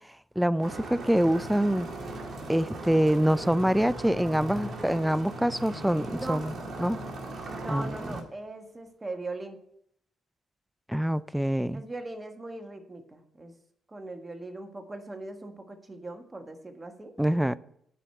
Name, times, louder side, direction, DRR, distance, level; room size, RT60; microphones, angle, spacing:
voice 1, 0.4-1.9 2.5-6.5 6.8-7.0 7.7-8.0 10.9-11.8 17.2-17.6, equal, 5° right, 0.4 m, -25 dB
sound 1, 0.6-8.2, right 2 dB, 55° right, 1.9 m, -38 dB
voice 2, 6.1-6.5 7.6-9.6 11.7-13.5 13.9-17.1, right 2 dB, 20° right, 1.5 m, -40 dB
10.0 x 4.9 x 7.9 m
cardioid pair, 90°, 0 cm